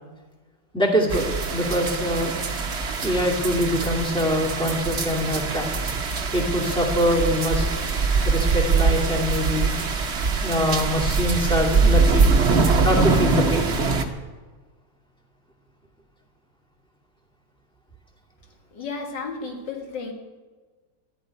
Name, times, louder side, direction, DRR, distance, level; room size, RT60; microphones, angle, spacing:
voice 1, 0.7-2.4 3.0-5.7 6.3-7.6 8.2-9.7 10.4-12.3 12.8-13.7, equal, 5° left, 0 dB, 2.3 m, -24 dB
sound 1, 1.1-14.0, right 4 dB, 40° right, 1.2 m, -23 dB
voice 2, 18.7-20.1, left 4 dB, 75° left, 2 dB, 2.5 m, -33 dB
13.0 x 8.4 x 9.8 m, 1.3 s
omnidirectional pair, 1.9 m